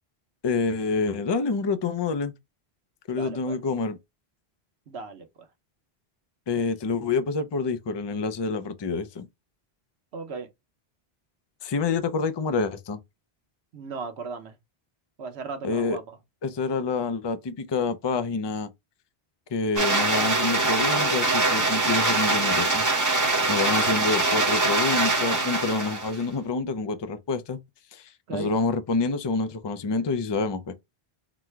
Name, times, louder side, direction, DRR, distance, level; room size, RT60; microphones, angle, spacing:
voice 1, 0.4-2.3 3.1-4.0 6.5-9.3 11.6-13.0 15.6-16.0 16.4-18.7 19.5-22.9 23.1-27.6 27.9-30.8, left 4 dB, 35° left, 0.4 m, -27 dB
voice 2, 3.1-3.6 4.9-5.5 6.5-6.7 10.1-10.5 13.7-14.6 15.2-16.2 23.2-23.5 28.3-28.5, right 4 dB, 85° right, 1.1 m, -37 dB
sound 1, 19.8-26.2, right 2 dB, 20° right, 0.7 m, -23 dB
4.0 x 2.2 x 4.5 m
omnidirectional pair, 1.1 m